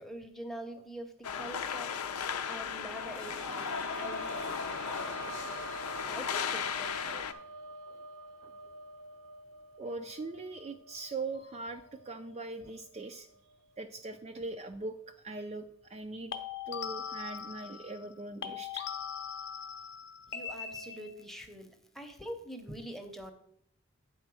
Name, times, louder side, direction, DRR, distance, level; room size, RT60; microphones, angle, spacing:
voice 1, 0.0-7.3 20.3-23.3, right 1 dB, ahead, 5 dB, 0.7 m, -45 dB
sound 1, 1.2-7.3, left 7 dB, 90° left, 0.6 m, -36 dB
sound 2, 2.7-14.0 14.4-14.5 16.0-16.1, right 3 dB, 75° right, 0.7 m, -47 dB
voice 2, 9.8-13.3 13.8-16.3 16.7-18.9, right 3 dB, 30° right, 5 dB, 0.3 m, -41 dB
sound 3, 11.3-11.6 16.3-18.1 18.4-21.3, left 7 dB, 50° left, 0.7 m, -41 dB
8.6 x 4.4 x 6.1 m, 0.67 s
head